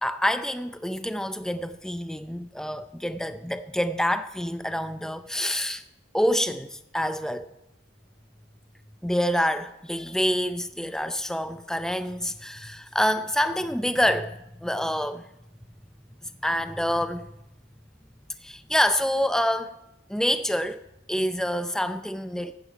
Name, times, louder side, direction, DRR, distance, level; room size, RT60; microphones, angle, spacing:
voice 1, 0.0-5.8 6.1-7.5 9.0-15.3 16.2-17.3 18.4-19.7 20.1-20.8 21.1-22.5, equal, 5° left, 0.5 m, -27 dB
14.5 x 9.9 x 5.1 m
head